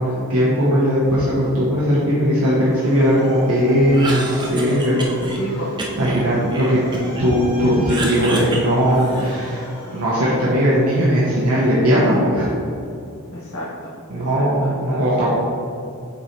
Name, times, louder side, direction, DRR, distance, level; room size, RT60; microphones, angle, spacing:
voice 1, 0.0-5.1 6.0-6.8 7.2-12.7 14.1-15.3, equal, 80° right, -8 dB, 1.2 m, -18 dB
Motor vehicle (road) / Siren, 2.2-10.8, left 1 dB, 30° left, 1.4 m, -39 dB
Cough, 3.8-5.4 5.8-7.3 7.6-9.5, right 1 dB, 20° right, 0.7 m, -29 dB
voice 2, 5.4-5.7 6.1-6.3 13.3-15.3, equal, 80° left, -7 dB, 1.1 m, -32 dB
8.5 x 3.1 x 4.3 m, 2.5 s
head